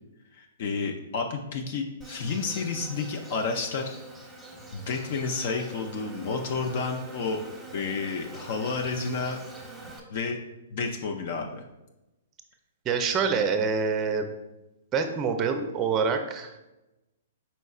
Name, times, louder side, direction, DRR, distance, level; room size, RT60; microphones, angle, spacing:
voice 1, 0.3-3.9 4.7-7.4 7.7-9.4 10.1-10.4 10.7-11.6, left 4 dB, 55° left, 3 dB, 0.5 m, -30 dB
Insect, 2.0-10.0, right 1 dB, 5° right, 0.9 m, -45 dB
voice 2, 12.8-14.3 14.9-16.6, right 5 dB, 25° right, 6 dB, 0.5 m, -26 dB
5.2 x 4.2 x 2.4 m, 0.99 s
hypercardioid pair, 130°, 0 cm